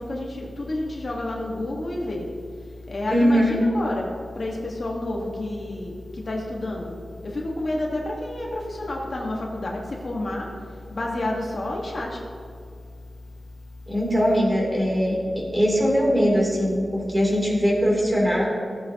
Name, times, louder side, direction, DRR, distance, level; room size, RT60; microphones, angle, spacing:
voice 1, 0.0-2.3 2.9-6.9 7.2-10.5 10.9-12.2, left 1 dB, 50° left, -2 dB, 1.3 m, -29 dB
voice 2, 3.1-3.6 13.9-18.5, equal, 15° right, -4 dB, 2.8 m, -21 dB
15.5 x 8.2 x 2.8 m, 2.2 s
wide cardioid pair, 110°, 0 cm